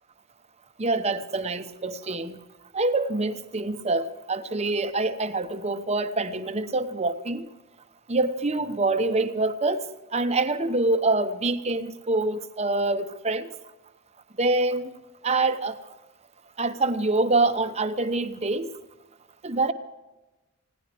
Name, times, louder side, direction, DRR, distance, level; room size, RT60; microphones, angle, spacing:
voice 1, 0.8-2.4 2.7-7.5 8.1-9.8 10.1-13.5 14.4-14.9 15.2-15.8 16.6-18.7 19.4-19.7, right 2 dB, 30° right, 10 dB, 0.9 m, -25 dB
20.5 x 17.0 x 3.4 m, 1.0 s
head